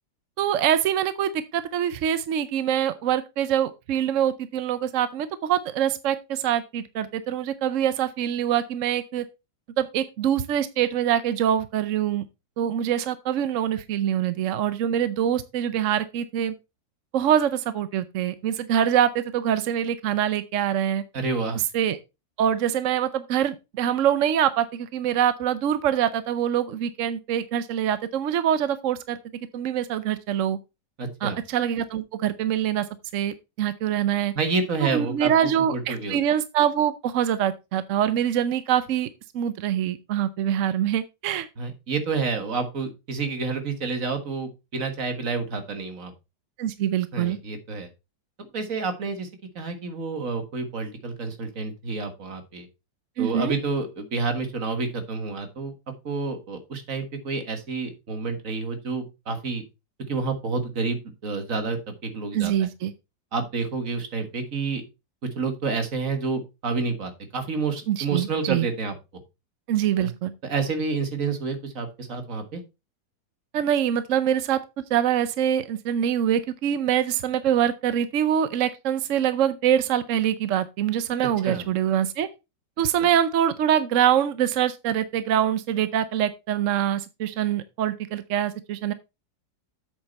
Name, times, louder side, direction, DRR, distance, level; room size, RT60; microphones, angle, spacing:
voice 1, 0.4-9.2 9.8-12.2 12.6-16.5 17.1-21.0 21.7-22.0 22.4-29.2 29.5-30.6 31.2-32.9 33.1-34.3 34.8-39.1 39.3-41.5 46.6-47.4 53.2-53.5 62.3-62.9 67.9-68.7 69.7-70.3 73.5-74.6 74.9-82.3 82.8-88.9, right 10 dB, 65° right, 0.8 m, -24 dB
voice 2, 21.1-21.6 31.0-31.4 34.4-35.3 35.7-36.2 41.6-46.1 47.1-47.9 48.4-49.3 49.6-52.7 53.2-55.7 56.0-59.6 60.1-62.7 63.3-64.8 65.4-68.9 70.0-70.1 70.4-72.6 81.4-81.7, right 4 dB, 50° right, 1.9 m, -29 dB
8.1 x 6.7 x 4.1 m
omnidirectional pair, 1.9 m